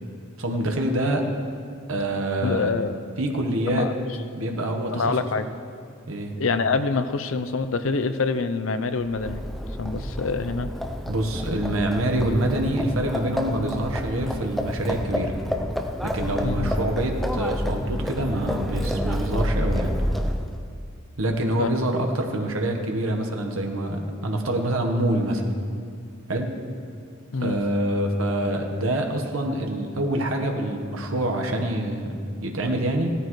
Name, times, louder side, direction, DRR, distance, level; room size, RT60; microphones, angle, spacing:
voice 1, 0.4-1.2 1.9-2.7 3.2-3.9 4.3-5.2 6.1-6.3 11.0-15.4 16.0-19.9 21.2-25.4 26.3-26.6 27.4-33.1, right 1 dB, 85° right, 2 dB, 1.3 m, -26 dB
voice 2, 2.4-3.0 3.7-4.0 4.9-5.5 6.4-9.4 9.8-10.7 16.4-16.7 21.6-21.7 27.3-27.6, left 4 dB, 70° left, 10 dB, 0.6 m, -25 dB
Livestock farm animals working animals, 9.0-20.6, equal, ahead, 0.6 m, -29 dB
16.5 x 13.0 x 3.2 m, 2.3 s
head